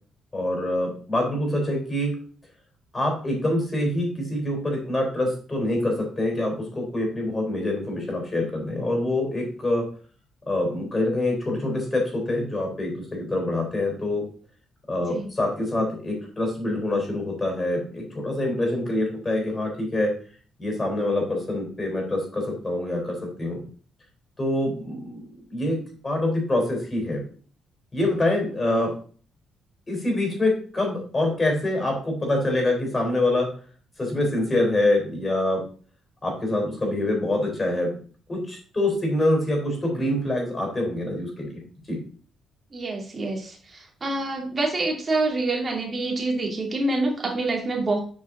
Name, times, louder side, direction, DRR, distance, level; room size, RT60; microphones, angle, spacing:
voice 1, 0.3-2.1 2.9-9.9 10.4-14.2 14.9-20.1 20.6-23.6 24.4-25.8 26.0-27.2 27.9-28.9 29.9-33.5 34.0-35.6 36.2-37.9 38.3-41.6 41.9-42.0, left 1 dB, 25° left, 1 dB, 3.9 m, -25 dB
voice 2, 42.7-48.0, right 2 dB, 30° right, 0 dB, 2.6 m, -26 dB
7.2 x 5.0 x 3.9 m, 0.42 s
cardioid pair, 90°, 0 cm